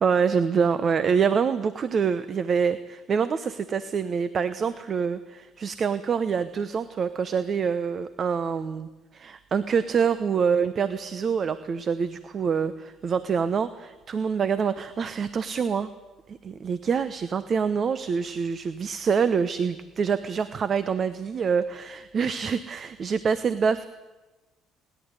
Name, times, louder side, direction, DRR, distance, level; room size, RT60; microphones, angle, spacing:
voice 1, 0.0-15.9 16.3-23.9, right 6 dB, 45° right, 13 dB, 0.9 m, -26 dB
28.0 x 11.5 x 9.8 m, 1.2 s
supercardioid pair, 90°, 0 cm